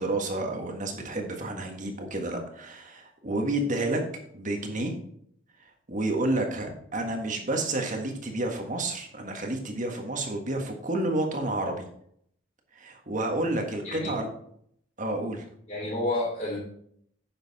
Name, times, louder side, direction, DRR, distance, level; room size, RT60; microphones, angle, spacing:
voice 1, 0.0-4.0 4.3-4.9 5.9-11.8 12.7-14.3 15.0-15.4, right 2 dB, 40° right, 3 dB, 1.6 m, -30 dB
voice 2, 13.8-14.2 15.7-16.6, left 2 dB, 35° left, -9 dB, 3.7 m, -30 dB
10.0 x 6.7 x 4.2 m, 0.67 s
head